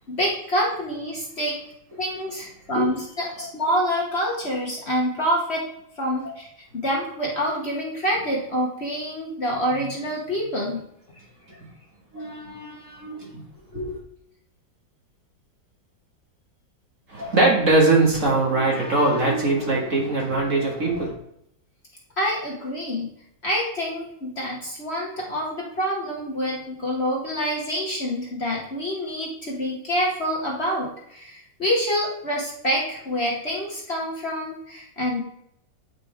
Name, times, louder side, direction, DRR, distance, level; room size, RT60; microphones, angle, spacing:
voice 1, 0.1-1.6 2.0-5.7 6.0-6.5 6.7-10.8 22.2-23.1 23.4-35.2, equal, 40° left, -3 dB, 1.3 m, -26 dB
voice 2, 12.1-13.4 13.7-13.8 17.1-21.2, right 2 dB, 45° right, -3 dB, 2.1 m, -22 dB
9.0 x 5.1 x 3.5 m, 0.75 s
omnidirectional pair, 1.9 m